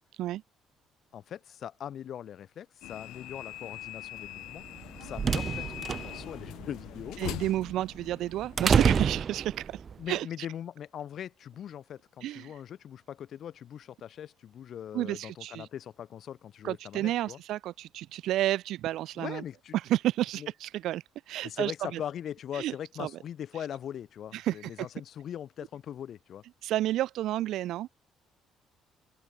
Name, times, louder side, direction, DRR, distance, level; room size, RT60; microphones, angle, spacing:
voice 1, 1.1-4.6 5.0-7.2 10.0-17.4 19.2-19.8 20.4-20.5 21.4-26.4, left 9 dB, 50° left, 7.3 m, -41 dB
sound 1, 2.8-8.7, left 16 dB, 80° left, 1.6 m, -42 dB
sound 2, 4.7-9.9, right 6 dB, 35° right, 2.8 m, -29 dB
voice 2, 7.2-10.5 12.2-12.6 14.9-15.7 16.6-19.4 19.7-22.0 22.5-23.1 23.5-23.7 24.3-24.9 26.6-27.9, right 14 dB, 70° right, 2.9 m, -31 dB
open air
cardioid pair, 140°, 0 cm